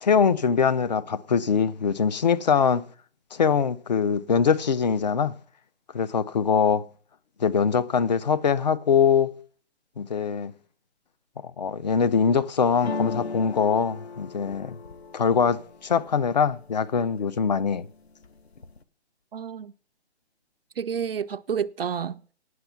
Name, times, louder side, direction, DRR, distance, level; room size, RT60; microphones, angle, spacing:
voice 1, 0.0-2.8 3.3-5.3 5.9-6.9 7.4-9.3 10.0-10.5 11.6-14.8 15.1-17.9, left 6 dB, 40° left, 0.5 m, -23 dB
sound 1, 12.8-16.7 17.2-17.8 18.1-18.8, left 4 dB, 65° left, 1.1 m, -37 dB
voice 2, 19.3-19.7 20.8-22.3, right 7 dB, 55° right, 0.5 m, -30 dB
9.5 x 7.1 x 7.1 m
figure-of-eight pair, 150°, 34 cm